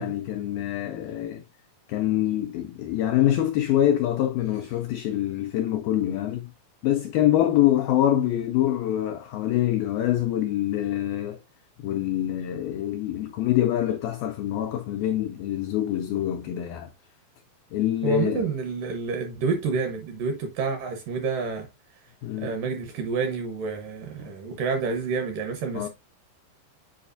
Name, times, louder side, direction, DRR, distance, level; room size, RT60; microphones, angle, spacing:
voice 1, 0.0-1.4 1.9-6.5 6.8-11.4 11.8-16.9 17.7-18.5 22.2-22.6 24.2-24.3 25.7-25.9, left 12 dB, 85° left, 2.0 m, -25 dB
voice 2, 18.0-21.7 22.4-25.9, right 5 dB, 70° right, 2.2 m, -29 dB
7.9 x 4.8 x 2.6 m
omnidirectional pair, 4.9 m